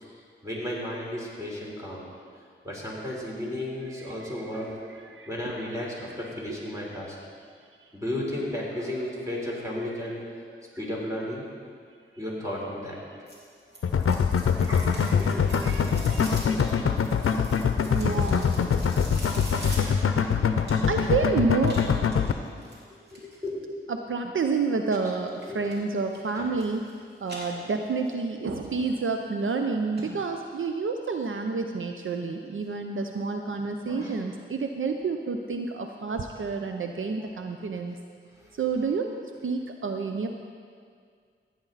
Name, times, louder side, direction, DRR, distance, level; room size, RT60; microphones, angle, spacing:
voice 1, 0.4-2.0 2.6-4.7 5.3-7.2 7.9-10.2 10.4-11.4 12.2-12.9 13.2-13.3 14.7-15.8 16.1-16.6 17.8-18.0 18.6-18.9 19.3-20.2 23.1-23.6 25.5-25.6 26.3-26.5 33.9-34.1, left 1 dB, 15° right, -4 dB, 3.6 m, -34 dB
voice 2, 3.8-6.6 6.9-7.1 9.9-10.2 14.5-16.4 17.9-18.5 20.2-20.3 20.9-21.9 23.9-26.9 27.2-38.0 38.6-40.3, right 4 dB, 70° right, 4 dB, 0.6 m, -30 dB
sound 1, 13.3-21.1 21.6-23.4 25.3-25.8 26.1-26.9 27.2-28.1 28.5-28.6 29.2-29.3 29.6-29.7 30.0-30.1 30.4-30.5, right 1 dB, 50° right, 3.1 m, -43 dB
sound 2, 13.8-22.3, left 6 dB, 85° left, 0.6 m, -23 dB
15.0 x 9.5 x 4.0 m, 2.1 s
wide cardioid pair, 60°, 21 cm